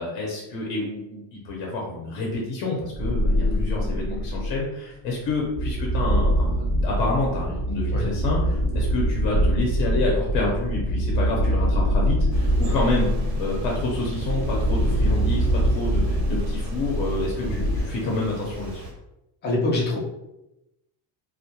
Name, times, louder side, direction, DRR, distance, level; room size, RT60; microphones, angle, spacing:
voice 1, 0.0-13.1 13.4-18.8, left 2 dB, 70° left, -2 dB, 0.8 m, -28 dB
sound 1, 2.9-4.7 5.3-17.8, equal, 45° right, 0.6 m, -24 dB
sound 2, 12.3-18.9, right 1 dB, 80° right, 0.8 m, -35 dB
voice 2, 19.4-20.0, left 2 dB, 25° left, -2 dB, 0.4 m, -26 dB
2.2 x 2.2 x 2.8 m, 0.92 s
cardioid pair, 170°, 44 cm